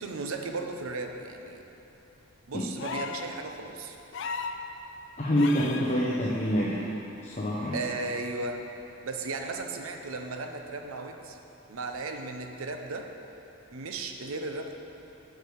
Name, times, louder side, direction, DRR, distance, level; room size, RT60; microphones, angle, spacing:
voice 1, 0.0-1.6 2.5-4.0 7.7-8.6 9.0-11.4 11.7-13.1 13.7-14.7, right 3 dB, 85° right, 5 dB, 0.7 m, -35 dB
sound 1, 2.8-3.3 4.1-4.6 5.4-5.9 7.3-7.4, left 5 dB, 60° left, 0.4 m, -35 dB
voice 2, 5.2-6.9 7.2-7.8, equal, 35° left, -6 dB, 0.8 m, -26 dB
12.0 x 4.8 x 4.7 m, 3.0 s
head